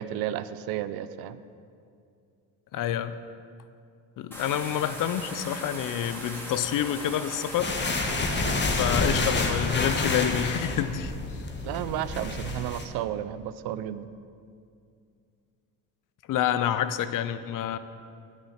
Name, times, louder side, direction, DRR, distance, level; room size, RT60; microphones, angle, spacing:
voice 1, 0.0-1.4 11.6-14.1, right 11 dB, 75° right, 14 dB, 0.5 m, -32 dB
voice 2, 2.7-3.2 4.2-7.8 8.8-11.1 16.3-17.8, left 10 dB, 60° left, 13 dB, 0.6 m, -28 dB
sound 1, 4.3-12.4, equal, 5° left, 2.3 m, -41 dB
sound 2, 7.6-12.8, left 2 dB, 30° left, 1.2 m, -28 dB
8.0 x 6.8 x 6.4 m, 2.4 s
cardioid pair, 90°, 36 cm